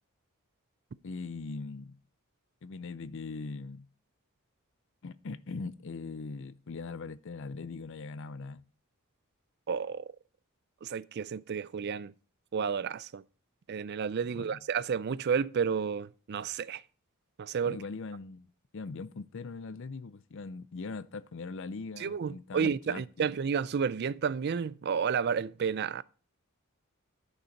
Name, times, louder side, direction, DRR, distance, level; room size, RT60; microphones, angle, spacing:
voice 1, 1.0-2.0 2.6-3.9 5.0-8.6 14.3-14.6 17.6-18.5 18.7-23.3, left 4 dB, 60° left, 0.5 m, -41 dB
voice 2, 9.7-10.0 10.8-12.1 12.5-13.2 13.7-16.8 17.4-17.8 22.0-26.0, right 6 dB, 50° right, 0.4 m, -31 dB
11.5 x 6.6 x 4.5 m
head